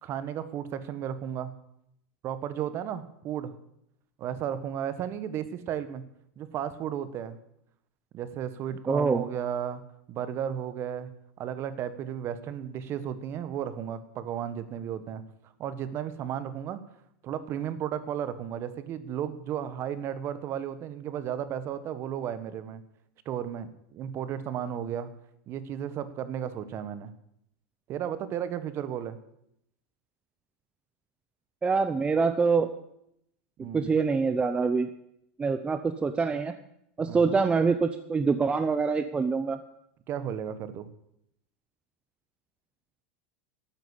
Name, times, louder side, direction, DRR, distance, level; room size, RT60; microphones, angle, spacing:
voice 1, 0.0-1.5 2.2-3.5 4.2-6.0 6.4-7.4 8.1-9.8 10.1-11.1 11.4-15.2 15.6-16.8 17.2-22.8 23.2-25.1 25.5-27.1 27.9-29.2 33.6-33.9 37.0-37.4 40.1-40.9, right 9 dB, 40° right, 13 dB, 1.5 m, -34 dB
voice 2, 8.9-9.2 31.6-32.7 33.7-34.9 35.4-36.5 37.0-39.6, right 4 dB, 15° right, 9 dB, 0.7 m, -25 dB
13.0 x 9.1 x 8.5 m, 0.76 s
supercardioid pair, 120°, 6 cm